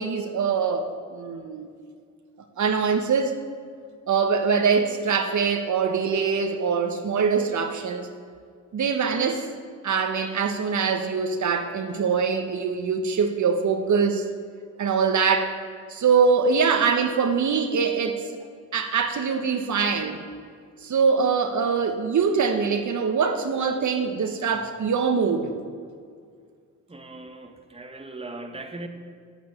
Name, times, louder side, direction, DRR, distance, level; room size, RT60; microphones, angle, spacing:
voice 1, 0.0-1.7 2.6-3.3 4.1-8.1 8.7-9.4 9.8-14.2 14.8-15.6 15.9-18.3 18.7-20.2 20.8-25.5, right 5 dB, 60° right, 6 dB, 1.2 m, -23 dB
voice 2, 26.9-28.9, right 2 dB, 20° right, 6 dB, 1.3 m, -39 dB
9.3 x 9.1 x 8.0 m, 2.1 s
cardioid pair, 60°, 33 cm